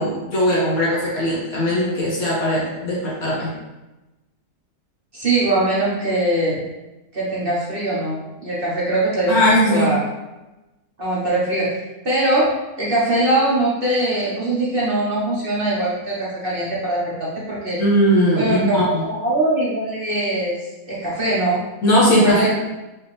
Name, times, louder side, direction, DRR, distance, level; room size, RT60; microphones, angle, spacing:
voice 1, 0.0-3.5 9.3-9.9 17.8-19.0 21.8-22.5, equal, 65° left, -7 dB, 2.1 m, -18 dB
voice 2, 5.1-6.6 7.1-9.4 9.7-10.0 11.0-11.8 12.0-17.8 18.3-20.6 20.9-21.6 22.2-22.5, right 1 dB, 40° right, -7 dB, 1.3 m, -21 dB
5.5 x 3.0 x 3.2 m, 1.0 s
omnidirectional pair, 1.6 m